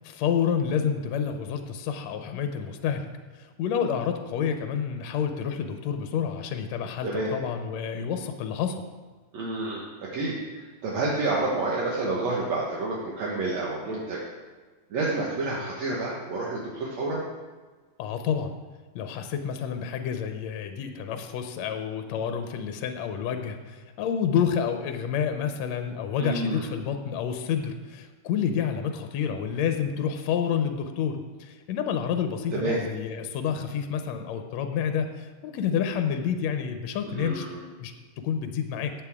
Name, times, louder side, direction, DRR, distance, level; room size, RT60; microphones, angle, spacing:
voice 1, 0.0-3.1 3.4-8.9 18.0-18.6 19.0-37.5 37.8-38.9, left 7 dB, 70° left, 6 dB, 1.9 m, -29 dB
voice 2, 9.3-10.4 10.8-14.2 14.9-17.2 26.2-26.6 32.5-32.8 37.1-37.6, right 2 dB, 65° right, -4 dB, 2.5 m, -29 dB
14.5 x 8.9 x 3.6 m, 1.4 s
omnidirectional pair, 3.5 m